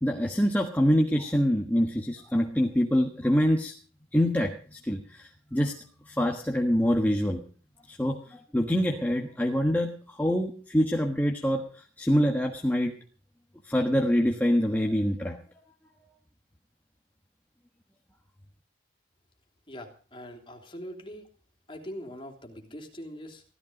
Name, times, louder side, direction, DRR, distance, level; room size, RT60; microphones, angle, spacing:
voice 1, 0.0-3.7 4.1-5.8 6.1-7.4 7.9-12.9 13.7-15.4, equal, 10° left, 2 dB, 1.3 m, -25 dB
voice 2, 19.7-21.3 21.7-23.4, equal, 25° left, 3 dB, 3.3 m, -42 dB
16.0 x 14.0 x 5.2 m, 0.41 s
head